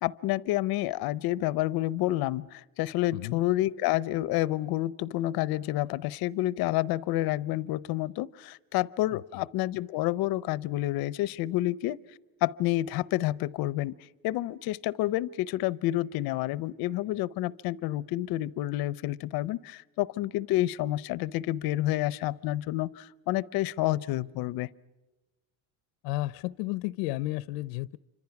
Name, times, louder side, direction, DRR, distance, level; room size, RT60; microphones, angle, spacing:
voice 1, 0.0-12.0 12.4-14.0 14.2-24.7, left 16 dB, 50° left, 20 dB, 0.7 m, -29 dB
voice 2, 9.1-9.5 26.0-28.0, left 18 dB, 90° left, 19 dB, 0.7 m, -33 dB
28.0 x 25.5 x 5.9 m, 1.1 s
cardioid pair, 150°, 47 cm